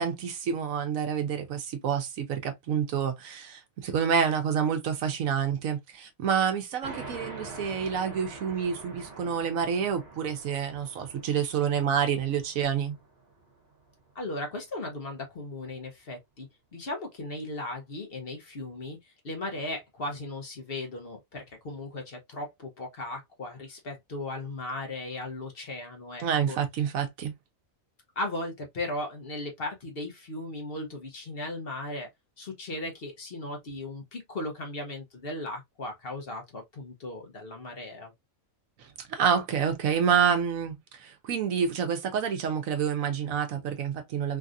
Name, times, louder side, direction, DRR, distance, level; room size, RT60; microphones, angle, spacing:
voice 1, 0.0-13.0 26.2-27.3 38.8-44.4, right 7 dB, 75° right, 1.1 m, -28 dB
sound 1, 6.8-14.0, right 3 dB, 50° right, 1.4 m, -45 dB
voice 2, 14.1-26.6 28.2-32.1 32.4-38.1, left 2 dB, 50° left, 0.9 m, -37 dB
3.3 x 2.5 x 2.4 m
omnidirectional pair, 1.5 m